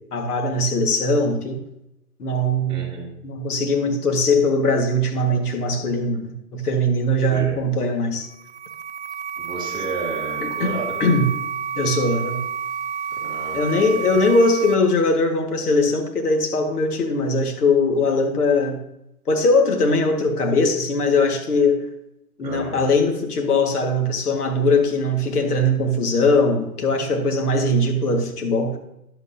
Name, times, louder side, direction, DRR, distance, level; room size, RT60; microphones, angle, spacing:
voice 1, 0.1-1.6 2.2-2.9 3.2-8.3 10.4-11.3 11.8-12.4 13.5-18.8 19.3-21.9 22.4-28.8, left 2 dB, 75° left, 3 dB, 1.9 m, -20 dB
voice 2, 2.7-3.1 7.3-7.5 9.4-11.0 13.1-14.2 22.4-22.8, right 3 dB, 10° right, -5 dB, 2.3 m, -32 dB
sound 1, 8.2-14.7, right 7 dB, 50° right, 0.7 m, -30 dB
10.5 x 8.1 x 2.8 m, 0.84 s
hypercardioid pair, 140°, 46 cm